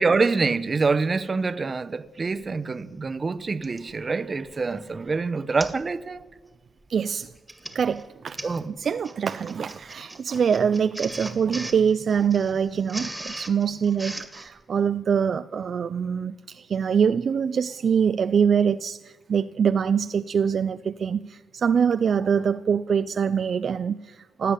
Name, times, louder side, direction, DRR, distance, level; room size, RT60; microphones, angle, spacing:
voice 1, 0.0-6.2 8.4-8.7, right 4 dB, 35° right, 0.8 m, -25 dB
Printer, 2.4-2.5 3.6-3.9 4.5-4.7 5.0-5.1 5.6-5.9 6.2-6.5 7.2-14.5, right 1 dB, 5° right, 2.1 m, -39 dB
voice 2, 6.9-7.3 7.7-8.4 8.8-24.5, right 7 dB, 55° right, 0.4 m, -24 dB
17.5 x 8.3 x 9.8 m
cardioid pair, 100°, 0 cm